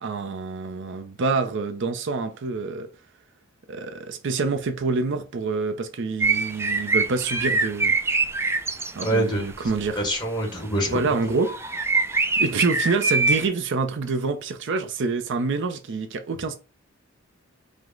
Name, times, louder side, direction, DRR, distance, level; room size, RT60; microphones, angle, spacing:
voice 1, 0.0-2.9 3.7-7.9 8.9-10.0 10.9-11.6 12.4-16.5, right 4 dB, 65° right, 0.5 m, -27 dB
sound 1, 6.2-9.1 9.4-9.8 11.1-11.2 11.4-13.5, right 3 dB, 10° right, 0.3 m, -24 dB
voice 2, 9.0-9.4 9.9-11.0, right 1 dB, 20° left, 1.5 m, -25 dB
4.9 x 2.1 x 3.7 m
head